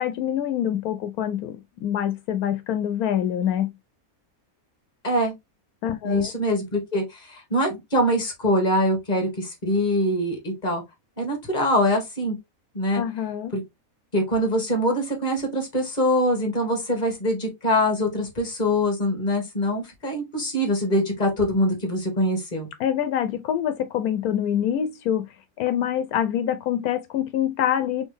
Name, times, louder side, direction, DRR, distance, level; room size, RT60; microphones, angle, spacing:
voice 1, 0.0-3.7 5.8-6.3 12.9-13.5 22.8-25.3 25.6-28.1, left 10 dB, 80° left, 1.1 m, -25 dB
voice 2, 6.0-10.8 11.2-12.3 12.7-13.0 13.5-13.6 14.1-22.7, equal, 30° left, 1.8 m, -23 dB
4.2 x 3.3 x 3.3 m
omnidirectional pair, 1.5 m